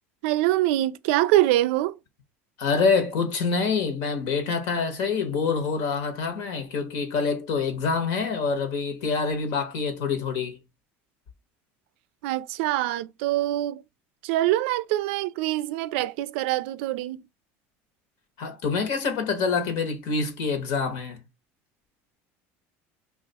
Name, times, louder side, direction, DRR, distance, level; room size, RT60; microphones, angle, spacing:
voice 1, 0.2-1.9 12.2-13.8 14.2-17.2, right 15 dB, 80° right, 0.4 m, -24 dB
voice 2, 2.6-10.6 18.4-21.2, left 5 dB, 65° left, 1.0 m, -26 dB
3.0 x 2.4 x 4.1 m
cardioid pair, 145°, 6 cm